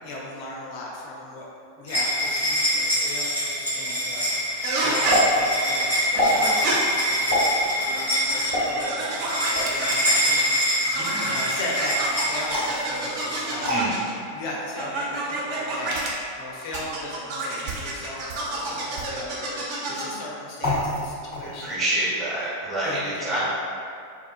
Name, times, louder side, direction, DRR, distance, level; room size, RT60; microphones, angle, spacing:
voice 1, 0.0-1.5 1.8-11.0 11.3-13.7 14.3-21.8 22.8-23.4, left 1 dB, 45° left, -4 dB, 0.4 m, -37 dB
sound 1, 1.9-13.5, equal, 85° right, 0.9 m, -25 dB
sound 2, 4.6-5.2 6.1-6.7 7.8-10.5 10.9-14.1 14.8-16.1 16.7-20.2, right 2 dB, 45° right, 0.5 m, -29 dB
sound 3, 5.1-5.2 6.1-6.4 7.3-7.5 8.5-8.6 9.5-9.8 12.5-12.8 13.6-13.8 14.7-14.8 15.7-16.1 16.7-16.8 17.5-17.8 18.3-18.4 18.9-19.1 20.6-21.0 21.3-21.7, left 1 dB, 65° right, 1.4 m, -26 dB
voice 2, 10.8-11.5 13.7-13.9 21.6-23.4, right 1 dB, 25° right, -10 dB, 1.1 m, -27 dB
2.4 x 2.4 x 2.4 m, 2.4 s
figure-of-eight pair, 90°, 0 cm